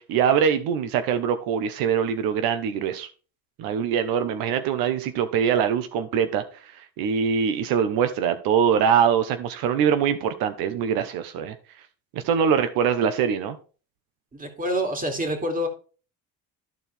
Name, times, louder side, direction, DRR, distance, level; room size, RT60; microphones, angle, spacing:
voice 1, 0.0-3.1 3.6-11.5 12.1-13.6, right 7 dB, 85° right, 10 dB, 1.0 m, -23 dB
voice 2, 14.3-15.7, equal, 25° right, 4 dB, 2.5 m, -27 dB
13.5 x 4.6 x 3.4 m, 0.36 s
cardioid pair, 110°, 34 cm